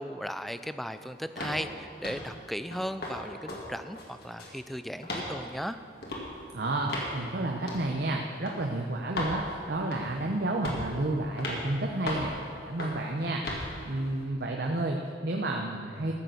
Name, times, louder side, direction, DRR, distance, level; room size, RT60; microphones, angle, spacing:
voice 1, 0.0-5.8, equal, ahead, 11 dB, 0.3 m, -36 dB
sound 1, 1.4-1.6 2.0-2.3 2.7-3.2 3.5-3.6 4.0-4.6 5.0-5.3 6.0-6.2 6.9-7.1 7.7-7.9 8.5-8.6 9.2-9.4 9.9-10.2 10.6-10.9 11.4-11.6 12.1-12.3 12.8-13.0 13.4-13.7, left 1 dB, 55° left, 2.2 m, -35 dB
voice 2, 6.5-12.3 12.6-13.4 13.8-16.1, right 2 dB, 55° right, 1 dB, 0.8 m, -31 dB
13.5 x 6.7 x 7.9 m, 2.4 s
head